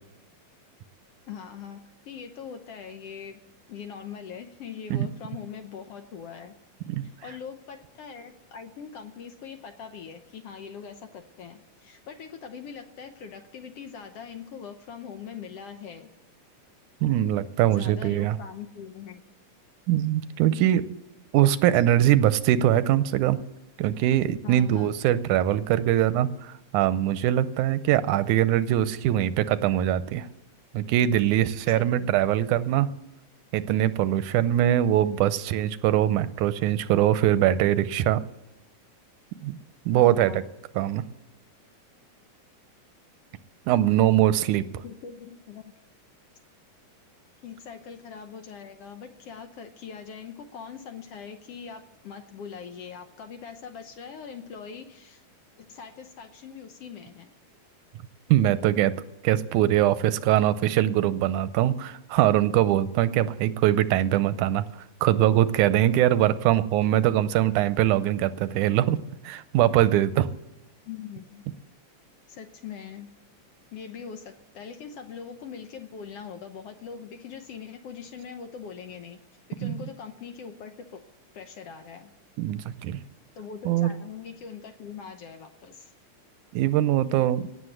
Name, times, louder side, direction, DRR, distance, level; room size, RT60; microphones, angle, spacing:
voice 1, 1.3-3.4 3.7-6.6 7.0-16.1 17.7-19.2 24.4-24.9 31.7-32.1 39.9-40.4 44.8-45.7 47.4-55.2 55.6-57.3 70.9-71.4 72.3-73.1 73.7-79.2 79.5-81.0 81.3-82.1 83.3-85.9, left 7 dB, 70° left, 7 dB, 1.6 m, -42 dB
voice 2, 17.0-18.4 19.9-20.9 21.3-23.4 23.8-30.3 30.7-32.9 33.5-38.2 39.4-39.6 39.9-40.4 40.8-41.0 43.7-44.7 58.3-58.9 59.2-69.0 69.2-70.3 79.6-79.7 82.4-83.0 83.7-83.9 86.5-87.5, right 12 dB, 85° right, 14 dB, 2.1 m, -22 dB
17.5 x 7.5 x 7.9 m, 0.97 s
omnidirectional pair, 3.5 m